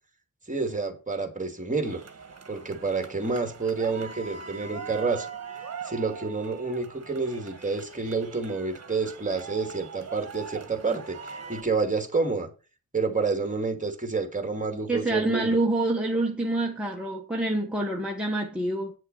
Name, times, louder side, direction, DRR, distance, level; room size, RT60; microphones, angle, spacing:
voice 1, 0.5-2.0 2.5-5.3 5.8-11.2 11.5-12.5 12.9-15.6, right 4 dB, 20° right, 2.3 m, -29 dB
sound 1, 1.8-11.6, right 6 dB, 50° right, 1.5 m, -42 dB
voice 2, 14.9-18.9, right 2 dB, 5° right, 1.6 m, -27 dB
9.2 x 6.5 x 5.5 m
wide cardioid pair, 110°, 34 cm